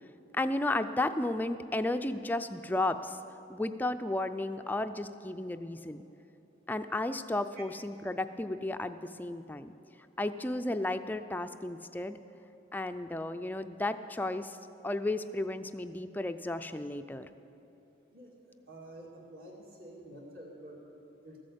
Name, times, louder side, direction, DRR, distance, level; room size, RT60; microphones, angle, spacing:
voice 1, 0.3-3.2 3.5-6.0 6.7-9.7 10.2-12.2 12.7-14.6 14.8-17.3, left 2 dB, 10° left, 9 dB, 0.3 m, -33 dB
voice 2, 18.7-21.4, right 1 dB, 50° right, -1 dB, 2.2 m, -49 dB
14.0 x 8.4 x 8.0 m, 2.9 s
head